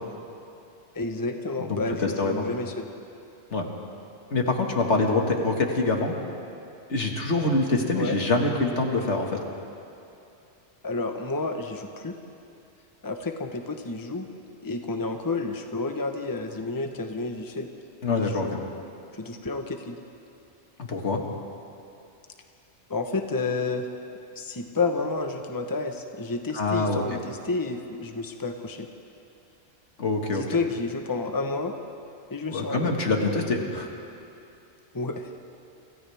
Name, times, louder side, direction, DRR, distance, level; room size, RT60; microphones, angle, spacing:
voice 1, 0.9-2.9 8.0-8.2 10.8-12.1 13.0-14.3 14.6-17.7 18.1-18.5 19.1-20.0 22.9-23.9 24.4-28.9 30.3-31.7 32.3-32.9 34.9-35.3, left 3 dB, 20° left, 4 dB, 1.1 m, -30 dB
voice 2, 1.6-2.5 3.5-3.7 4.3-6.2 6.9-9.4 18.0-18.6 20.8-21.2 26.5-27.0 30.0-30.6 32.5-33.9, left 3 dB, 75° left, 1 dB, 2.2 m, -25 dB
29.5 x 26.0 x 3.5 m, 2.7 s
omnidirectional pair, 1.2 m